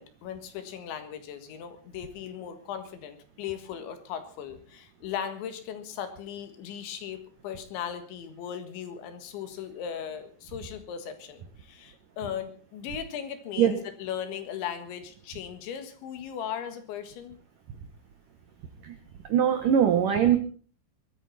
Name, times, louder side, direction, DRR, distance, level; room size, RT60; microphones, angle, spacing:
voice 1, 0.0-17.4, left 9 dB, 70° left, 9 dB, 3.8 m, -38 dB
voice 2, 19.3-20.4, right 9 dB, 80° right, 8 dB, 1.8 m, -21 dB
21.5 x 14.0 x 4.2 m, 0.41 s
omnidirectional pair, 5.8 m